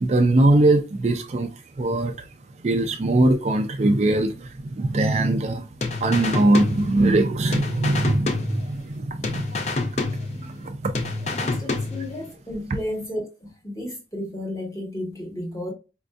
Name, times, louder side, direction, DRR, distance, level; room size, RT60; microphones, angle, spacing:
voice 1, 0.0-2.3 2.6-5.7 6.0-11.3, right 2 dB, 40° right, 0.3 m, -22 dB
sound 1, 5.8-7.2 7.5-9.0 9.2-10.7 10.9-12.3, left 3 dB, 40° left, 0.5 m, -28 dB
voice 2, 11.3-15.7, left 1 dB, 20° left, 1.1 m, -33 dB
4.4 x 2.6 x 2.3 m
head